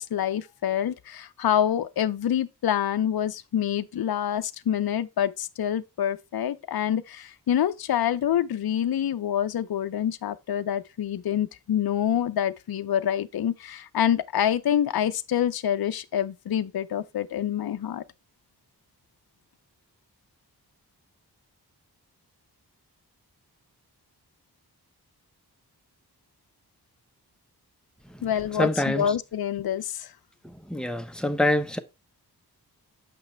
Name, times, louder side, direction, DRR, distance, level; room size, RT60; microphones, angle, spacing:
voice 1, 0.0-18.0 28.2-30.1, left 10 dB, 65° left, 0.6 m, -26 dB
voice 2, 28.6-29.0 30.7-31.8, left 1 dB, ahead, 0.8 m, -25 dB
7.5 x 5.7 x 3.3 m
cardioid pair, 50°, 40 cm